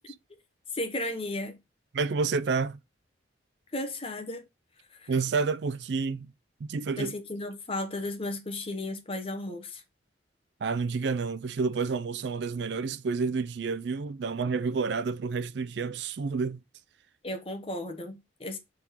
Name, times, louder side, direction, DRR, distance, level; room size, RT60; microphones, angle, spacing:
voice 1, 0.7-1.6 3.7-4.5 4.9-5.1 7.0-9.8 17.2-18.6, left 1 dB, 30° left, 1.0 m, -34 dB
voice 2, 1.9-2.8 5.1-6.3 6.6-7.1 10.6-16.6, right 4 dB, 70° right, 0.4 m, -29 dB
6.4 x 3.7 x 4.4 m
head